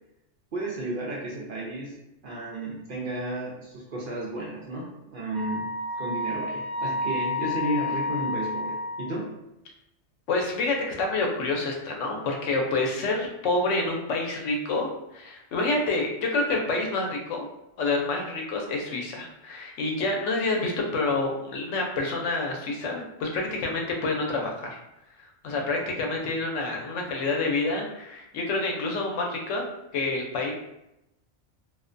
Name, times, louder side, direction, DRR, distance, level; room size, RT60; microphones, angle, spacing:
voice 1, 0.5-1.9 2.2-9.3, right 1 dB, 60° right, -4 dB, 0.6 m, -33 dB
Wind instrument woodwind instrument, 5.3-9.2, left 2 dB, 25° right, 1.1 m, -30 dB
voice 2, 10.3-17.5 17.8-24.8 25.2-29.7 29.9-30.5, left 3 dB, 85° left, 0 dB, 0.9 m, -28 dB
2.4 x 2.1 x 2.5 m, 0.88 s
omnidirectional pair, 1.2 m